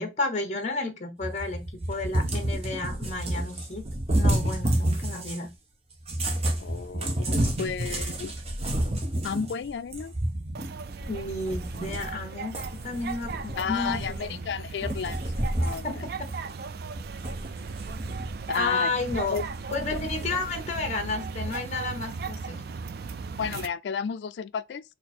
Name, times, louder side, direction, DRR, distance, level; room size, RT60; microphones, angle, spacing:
voice 1, 0.0-3.8 4.1-5.5 11.0-12.6 12.8-14.4 15.8-16.3 18.5-19.4 19.7-22.6, left 3 dB, 40° left, 1.2 m, -32 dB
Cat, 1.2-5.5 6.0-12.2 12.5-14.4 14.8-15.9 16.2-16.3 16.9-18.5 19.1-20.2, right 1 dB, 35° right, 0.8 m, -30 dB
voice 2, 6.6-8.3 9.2-10.1 13.6-16.1 18.5-18.9 19.3-19.5 19.9-20.0 23.4-24.8, left 6 dB, 70° left, 0.3 m, -32 dB
sound 1, 10.6-23.7, right 4 dB, 55° right, 0.3 m, -37 dB
4.2 x 2.7 x 4.2 m
head